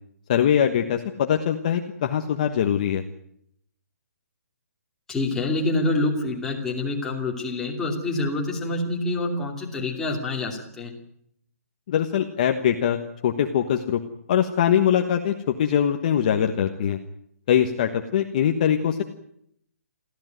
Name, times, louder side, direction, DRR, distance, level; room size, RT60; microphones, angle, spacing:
voice 1, 0.3-3.0 11.9-14.0 14.3-17.0 17.5-19.0, left 9 dB, 30° left, 5 dB, 1.3 m, -22 dB
voice 2, 5.1-10.9, left 2 dB, 5° left, -1 dB, 2.6 m, -26 dB
23.5 x 15.0 x 9.3 m, 0.73 s
hypercardioid pair, 170°, 8 cm